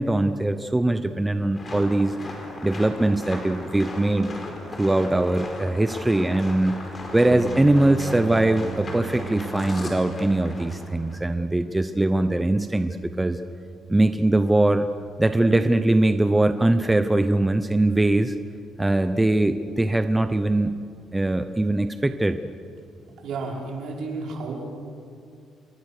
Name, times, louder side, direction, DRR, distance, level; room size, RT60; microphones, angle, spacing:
voice 1, 0.0-4.3 4.7-6.8 7.1-13.4 13.9-14.9 15.2-18.4 18.8-20.7 21.1-22.4, right 2 dB, 10° right, 9 dB, 0.7 m, -21 dB
sound 1, 1.5-11.2, left 2 dB, 25° left, 4.7 m, -37 dB
sound 2, 7.3-21.6, right 8 dB, 45° right, 1.2 m, -41 dB
voice 2, 23.2-24.7, right 3 dB, 60° right, 0 dB, 5.3 m, -32 dB
28.0 x 23.0 x 6.7 m, 2.4 s
cardioid pair, 150°, 0 cm